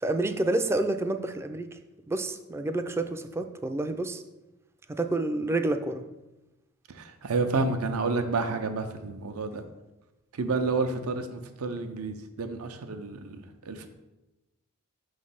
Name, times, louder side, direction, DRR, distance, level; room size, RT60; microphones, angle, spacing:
voice 1, 0.0-1.7 2.1-4.2 4.9-6.0, right 2 dB, 10° right, 8 dB, 0.3 m, -29 dB
voice 2, 6.9-9.6 10.3-13.9, right 3 dB, 90° right, 7 dB, 0.6 m, -30 dB
5.9 x 3.2 x 5.5 m, 1.0 s
head